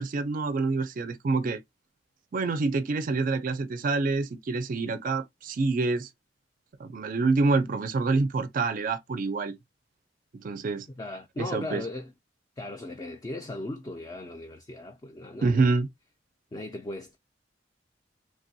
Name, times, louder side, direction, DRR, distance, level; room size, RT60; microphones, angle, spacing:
voice 1, 0.0-1.6 2.3-6.1 6.8-9.5 10.4-10.9 11.4-11.8 15.4-15.9, right 3 dB, 50° right, 0.4 m, -27 dB
voice 2, 11.0-12.1 12.6-15.7 16.5-17.2, left 2 dB, 20° left, 0.4 m, -37 dB
3.2 x 2.2 x 2.6 m
head